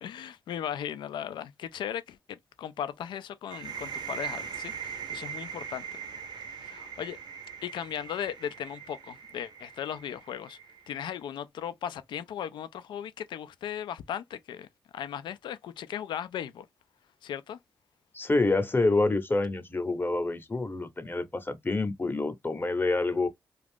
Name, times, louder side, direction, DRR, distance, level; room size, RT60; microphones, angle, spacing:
voice 1, 0.0-5.9 6.6-7.2 7.6-10.6 10.9-14.7 14.9-16.7 17.2-17.6, left 9 dB, 80° left, 0.4 m, -37 dB
sound 1, 3.5-11.0, right 7 dB, 70° right, 0.8 m, -40 dB
voice 2, 18.1-23.3, left 2 dB, 25° left, 0.8 m, -27 dB
2.5 x 2.4 x 3.4 m
supercardioid pair, 50°, 8 cm